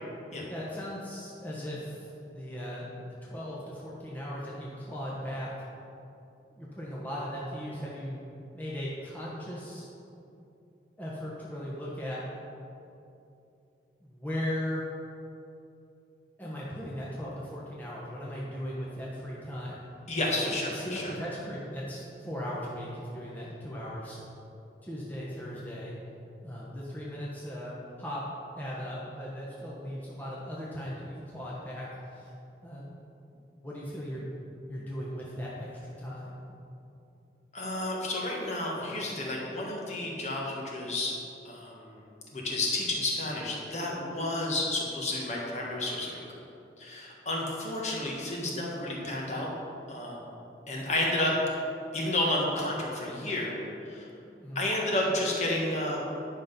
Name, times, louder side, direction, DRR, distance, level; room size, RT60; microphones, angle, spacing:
voice 1, 0.5-5.5 6.5-8.2 8.5-9.9 11.0-12.2 14.0-14.8 16.4-19.8 20.5-24.2 24.8-26.0 26.4-28.2 28.5-32.3 32.6-32.9 33.3-34.3 34.7-36.4 54.3-54.7, equal, 10° left, -6 dB, 1.1 m, -38 dB
voice 2, 20.1-21.1 37.5-41.1 41.4-46.2 46.8-49.5 49.9-50.2 50.7-51.4 51.9-53.5 53.8-54.1 54.5-56.0, left 1 dB, 40° left, -3 dB, 1.5 m, -31 dB
10.5 x 5.8 x 5.3 m, 2.7 s
head